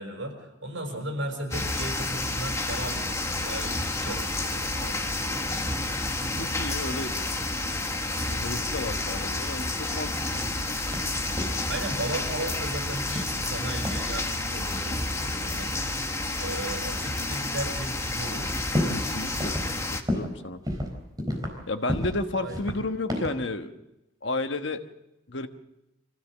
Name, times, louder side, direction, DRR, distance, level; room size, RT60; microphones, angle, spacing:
voice 1, 0.0-6.0 11.4-15.7 16.3-18.5 22.3-22.7, right 1 dB, 80° right, 3 dB, 6.2 m, -36 dB
sound 1, 1.5-20.0, left 2 dB, 15° left, 1.5 m, -30 dB
voice 2, 6.3-7.2 7.6-7.7 8.3-10.4 18.9-19.5 20.1-20.6 21.7-23.7 24.2-24.8 25.3-25.5, left 2 dB, 65° left, 7 dB, 1.4 m, -32 dB
sound 2, 10.9-11.1 11.4-11.7 13.1-13.5 13.8-14.1 15.4-15.6 16.5-16.6 17.2-17.3 17.8-17.9 18.1-19.1 19.4-19.7 20.1-20.4 20.6-21.6 21.9-22.2 22.5-23.4, left 1 dB, 20° right, 4.1 m, -31 dB
25.5 x 16.0 x 7.5 m, 0.93 s
head